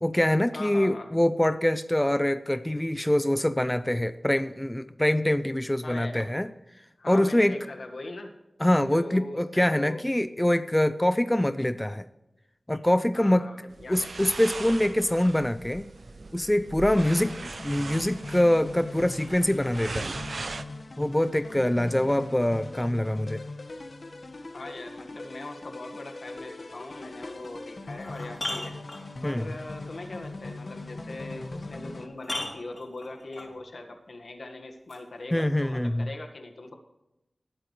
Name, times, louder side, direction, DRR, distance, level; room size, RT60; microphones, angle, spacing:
voice 1, 0.0-6.5 7.1-7.6 8.6-12.0 12.7-13.5 13.9-15.9 16.3-20.1 21.0-23.4 29.2-29.4 35.3-36.1, left 1 dB, 15° left, 12 dB, 0.5 m, -24 dB
voice 2, 0.5-1.1 5.8-6.3 7.0-8.4 8.8-10.0 13.1-14.1 24.5-28.8 29.2-36.7, left 2 dB, 80° left, 4 dB, 1.8 m, -41 dB
sound 1, 13.7-20.6, right 3 dB, 75° right, 0.7 m, -39 dB
sound 2, 17.0-32.1, left 2 dB, 60° left, 1.6 m, -41 dB
sound 3, 27.3-27.4 27.9-29.4 31.4-31.5 32.2-33.5 34.9-35.0, left 1 dB, 40° left, 4.3 m, -36 dB
19.0 x 8.8 x 3.3 m, 0.92 s
wide cardioid pair, 70°, 0 cm